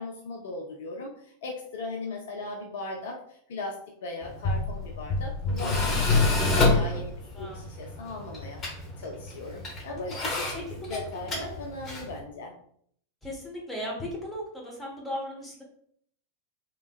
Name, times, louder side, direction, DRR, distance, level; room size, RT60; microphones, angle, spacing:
voice 1, 0.0-8.6 9.0-10.5 10.9-12.5, left 2 dB, 55° left, 1 dB, 0.5 m, -38 dB
Tools, 4.2-12.2, left 3 dB, 25° left, 1.0 m, -28 dB
voice 2, 7.3-7.6 10.5-11.5 13.2-15.6, equal, 5° left, -3 dB, 1.3 m, -37 dB
3.4 x 3.0 x 2.4 m, 0.64 s
figure-of-eight pair, 90°, 0 cm